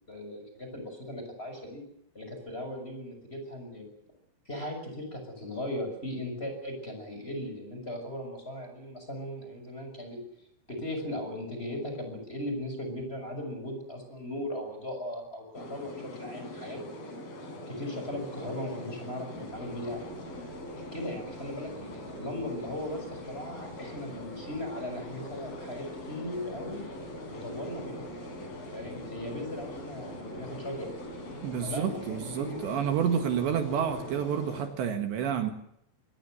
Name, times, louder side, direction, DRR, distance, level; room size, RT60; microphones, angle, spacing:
voice 1, 0.1-1.8 2.1-3.9 4.4-10.2 10.7-16.8 17.7-20.0 20.7-26.8 27.3-28.1 28.7-30.9 31.6-32.6, left 1 dB, 10° left, 5 dB, 6.5 m, -38 dB
sound 1, 15.5-34.7, left 1 dB, 50° left, 6.0 m, -42 dB
sound 2, 19.3-34.3, right 4 dB, 50° right, 5.4 m, -51 dB
voice 2, 31.4-35.5, right 8 dB, 70° right, 7 dB, 3.8 m, -29 dB
25.5 x 19.5 x 8.1 m, 0.72 s
omnidirectional pair, 5.5 m